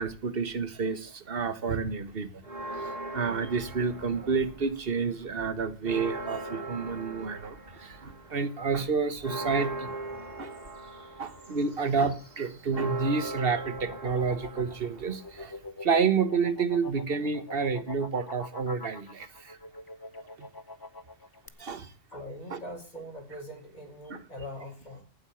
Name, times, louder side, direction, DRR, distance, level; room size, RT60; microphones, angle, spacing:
voice 1, 0.0-2.4 3.1-9.9 10.4-10.5 11.2-15.5 15.8-19.6 20.4-20.5 21.6-21.9 22.5-22.6 24.1-24.2, right 5 dB, 60° right, 1.5 m, -29 dB
sound 1, 2.4-4.8 5.2-15.7, right 2 dB, 40° right, 3.2 m, -40 dB
sound 2, 13.1-21.5, left 3 dB, 20° left, 0.9 m, -44 dB
voice 2, 22.1-25.0, equal, 40° left, 5.0 m, -42 dB
15.0 x 8.2 x 7.0 m
omnidirectional pair, 1.1 m